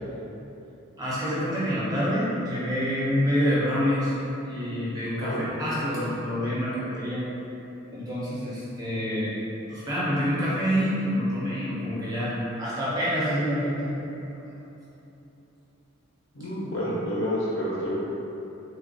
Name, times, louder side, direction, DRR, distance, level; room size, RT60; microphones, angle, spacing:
voice 1, 1.0-4.1 4.4-7.2 7.9-9.3 9.7-14.0, equal, 15° right, -9 dB, 0.5 m, -27 dB
voice 2, 16.3-17.9, equal, 60° left, -7 dB, 0.6 m, -29 dB
3.2 x 2.2 x 2.5 m, 3.0 s
head